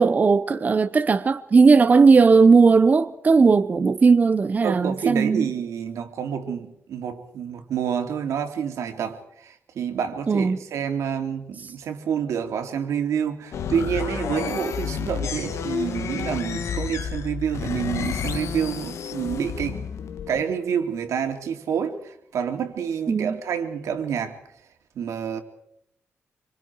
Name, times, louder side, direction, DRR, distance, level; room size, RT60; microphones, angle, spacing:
voice 1, 0.0-5.5 10.3-10.6 23.1-23.4, right 4 dB, 35° right, 0.8 m, -17 dB
voice 2, 4.6-19.8 20.3-24.4 24.9-25.4, right 7 dB, 90° right, 2.8 m, -28 dB
sound 1, 13.5-20.4, left 7 dB, 75° left, 1.5 m, -30 dB
26.5 x 25.5 x 4.7 m
cardioid pair, 125°, 5 cm